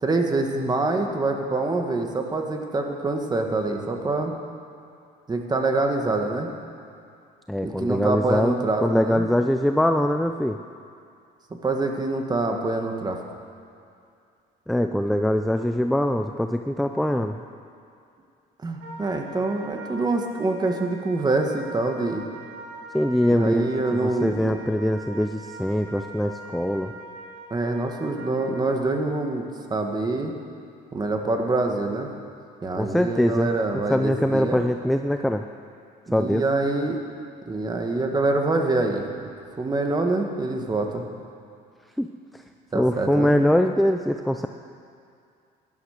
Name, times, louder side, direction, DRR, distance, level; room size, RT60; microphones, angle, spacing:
voice 1, 0.0-4.3 5.3-6.5 7.6-9.2 11.6-13.2 18.6-22.2 23.3-24.5 27.5-30.3 30.9-32.1 32.6-34.6 36.1-37.0 37.5-39.3 39.6-41.1 42.7-43.3, right 2 dB, 25° right, 3 dB, 1.7 m, -25 dB
voice 2, 7.5-10.6 14.7-17.4 22.9-26.9 32.8-33.5 33.9-35.4 36.1-36.4 42.0-42.4 42.7-44.5, equal, ahead, 6 dB, 0.5 m, -23 dB
Wind instrument woodwind instrument, 18.8-28.7, right 2 dB, 85° right, 3.8 m, -42 dB
16.0 x 11.5 x 6.6 m, 2.4 s
cardioid pair, 110°, 17 cm